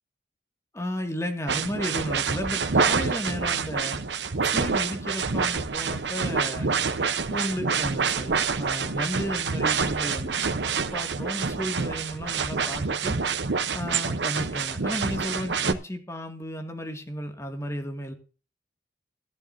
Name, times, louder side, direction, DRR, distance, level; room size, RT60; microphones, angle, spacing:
voice 1, 0.7-4.0 4.4-6.7 7.3-13.2 13.7-18.1, equal, 15° left, 4 dB, 2.1 m, -34 dB
sound 1, 1.5-15.7, right 5 dB, 80° right, 0.9 m, -27 dB
15.5 x 11.0 x 2.7 m, 0.36 s
head